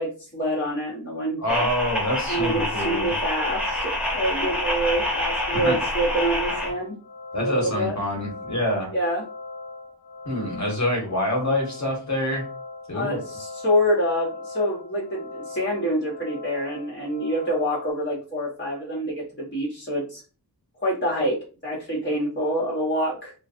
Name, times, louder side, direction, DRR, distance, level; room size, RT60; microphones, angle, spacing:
voice 1, 0.0-1.6 2.3-6.9 7.4-7.9 8.9-9.2 12.9-20.2 20.8-21.4 21.6-23.4, equal, 30° left, -4 dB, 1.1 m, -26 dB
voice 2, 1.4-3.1 5.5-5.8 7.3-8.9 10.2-12.5 12.9-13.2, left 1 dB, 45° left, -1 dB, 1.2 m, -26 dB
sound 1, 1.5-6.7, left 1 dB, 5° right, 0.8 m, -27 dB
sound 2, 2.0-17.9, left 3 dB, 75° left, 0.7 m, -40 dB
2.4 x 2.4 x 2.5 m, 0.35 s
wide cardioid pair, 80°, 39 cm